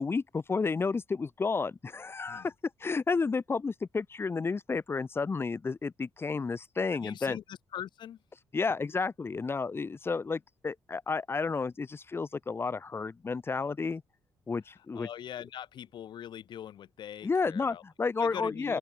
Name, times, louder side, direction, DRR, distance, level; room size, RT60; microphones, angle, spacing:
voice 1, 0.0-2.5 2.8-7.4 8.5-14.0 14.5-15.1 17.2-18.8, left 4 dB, 30° left, 3.3 m, -31 dB
voice 2, 6.9-8.2 14.9-17.8 18.2-18.8, left 10 dB, 70° left, 4.3 m, -42 dB
open air
cardioid pair, 115°, 8 cm